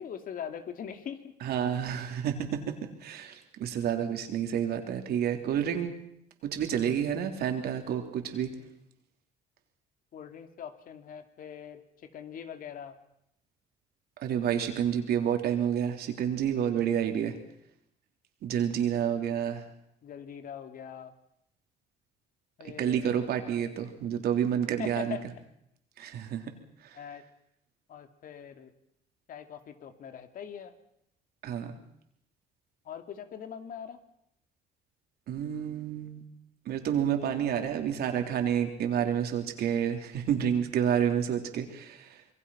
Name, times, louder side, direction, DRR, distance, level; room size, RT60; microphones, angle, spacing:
voice 1, 0.0-1.3 10.1-13.0 20.0-21.1 22.6-23.3 24.8-25.3 26.9-27.2 27.9-28.7 29.3-30.7 32.8-34.0, left 8 dB, 55° left, 8 dB, 2.5 m, -42 dB
voice 2, 1.4-5.9 6.4-8.5 14.2-17.4 18.4-19.7 22.6-25.2 26.0-26.5 26.8-27.0 31.4-31.8 35.3-36.2 36.7-42.2, right 9 dB, 70° right, 5 dB, 3.5 m, -29 dB
26.5 x 22.5 x 5.8 m, 0.76 s
cardioid pair, 110°, 17 cm